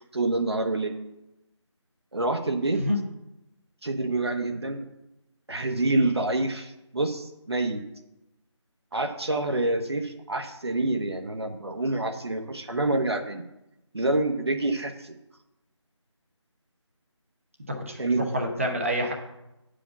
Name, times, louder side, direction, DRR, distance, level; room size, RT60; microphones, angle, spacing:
voice 1, 0.1-1.0 2.1-2.8 3.8-4.8 5.5-7.8 8.9-13.4 13.9-15.1 18.0-18.2, right 2 dB, 55° right, 4 dB, 1.2 m, -27 dB
voice 2, 17.7-19.1, equal, 25° right, 1 dB, 1.1 m, -28 dB
8.6 x 5.1 x 7.1 m, 0.93 s
figure-of-eight pair, 165°, 16 cm